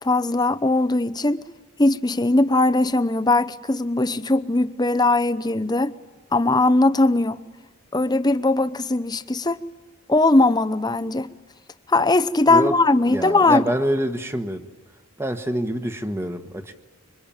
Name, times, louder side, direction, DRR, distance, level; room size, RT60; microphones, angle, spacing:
voice 1, 0.0-1.4 1.8-5.9 6.3-7.4 7.9-9.6 10.1-11.3 11.9-13.7, left 2 dB, 20° left, 0.8 m, -20 dB
voice 2, 13.1-14.7 15.2-16.7, right 1 dB, 10° right, 1.3 m, -26 dB
26.0 x 24.0 x 8.9 m
head